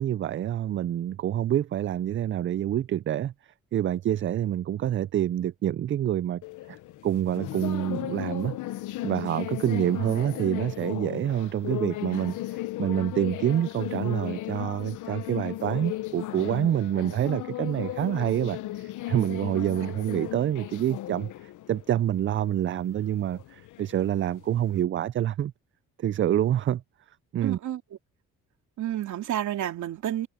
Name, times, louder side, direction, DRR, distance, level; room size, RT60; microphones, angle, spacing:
voice 1, 0.0-6.4 6.7-6.8 7.0-8.6 9.0-25.5 26.0-26.8 27.3-27.6, right 11 dB, 40° right, 0.4 m, -27 dB
sound 1, 6.4-24.8, left 15 dB, 85° left, 1.0 m, -36 dB
voice 2, 27.4-27.8 28.8-30.3, right 11 dB, 75° right, 2.8 m, -30 dB
cardioid pair, 90°, 30 cm